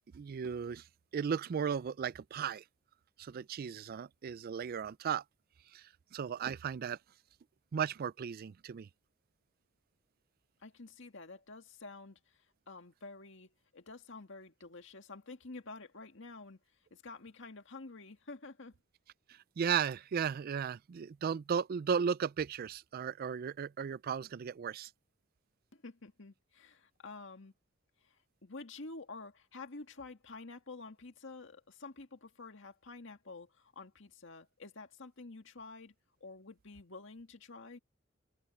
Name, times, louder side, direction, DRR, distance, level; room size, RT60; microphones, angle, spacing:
voice 1, 0.1-0.9 1.1-2.6 3.2-5.2 5.7-7.0 7.7-8.9 19.3-24.9, right 7 dB, 50° right, 0.3 m, -35 dB
voice 2, 10.6-16.6 16.9-18.8 25.7-27.5 28.0-35.9 36.2-37.8, left 3 dB, 65° left, 2.0 m, -49 dB
head